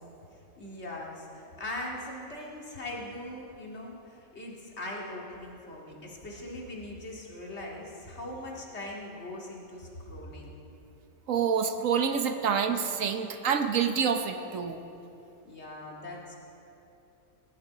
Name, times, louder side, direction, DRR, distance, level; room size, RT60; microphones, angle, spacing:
voice 1, 0.6-10.5 15.4-16.3, left 1 dB, 60° left, -2 dB, 2.5 m, -40 dB
voice 2, 11.3-14.8, right 7 dB, 90° right, 7 dB, 1.3 m, -27 dB
19.5 x 11.0 x 5.1 m, 2.8 s
omnidirectional pair, 1.3 m